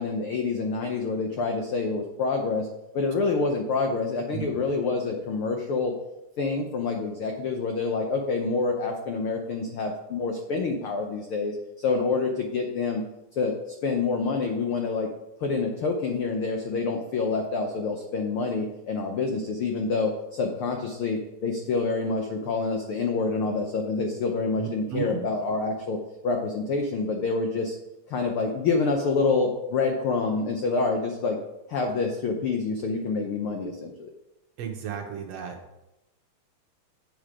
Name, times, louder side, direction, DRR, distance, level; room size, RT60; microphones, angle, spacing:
voice 1, 0.0-2.7 2.9-5.9 6.4-13.0 13.4-13.5 13.8-15.1 15.4-26.0 26.2-27.7 28.1-31.4 31.7-34.1, left 4 dB, 75° left, 3 dB, 1.2 m, -27 dB
voice 2, 24.6-25.2 34.6-35.6, right 8 dB, 65° right, 3 dB, 1.8 m, -33 dB
8.7 x 6.6 x 4.9 m, 0.94 s
omnidirectional pair, 3.5 m